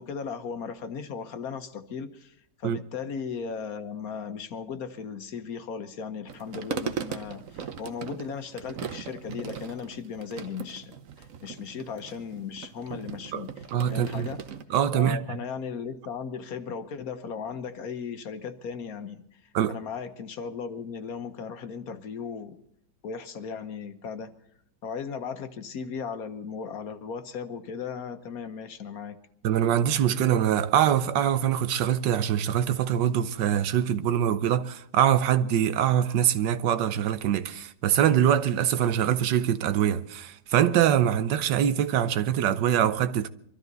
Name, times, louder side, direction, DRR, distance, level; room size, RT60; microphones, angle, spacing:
voice 1, 0.0-14.4 14.9-19.2 19.7-22.6 23.0-24.3 24.8-29.2, left 6 dB, 60° left, 1.4 m, -37 dB
sound 1, 6.3-14.6, right 7 dB, 55° right, 1.2 m, -38 dB
voice 2, 13.7-14.3 14.7-15.2 19.5-19.8 29.4-43.3, right 10 dB, 90° right, 1.4 m, -24 dB
23.5 x 13.0 x 4.0 m
omnidirectional pair, 1.9 m